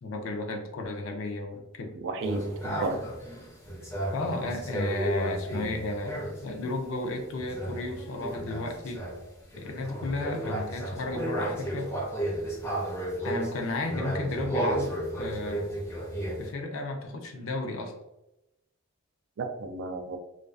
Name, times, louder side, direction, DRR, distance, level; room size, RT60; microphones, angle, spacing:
voice 1, 0.0-1.9 2.7-2.9 4.1-6.1 6.4-9.0 9.5-11.9 13.2-15.7 16.4-17.9, left 2 dB, 65° left, 3 dB, 0.4 m, -33 dB
voice 2, 2.0-3.1 19.4-20.2, right 3 dB, 55° right, 6 dB, 0.3 m, -33 dB
sound 1, 2.2-6.5 7.3-16.5, right 1 dB, 10° left, 0.5 m, -33 dB
2.4 x 2.3 x 2.3 m, 0.91 s
head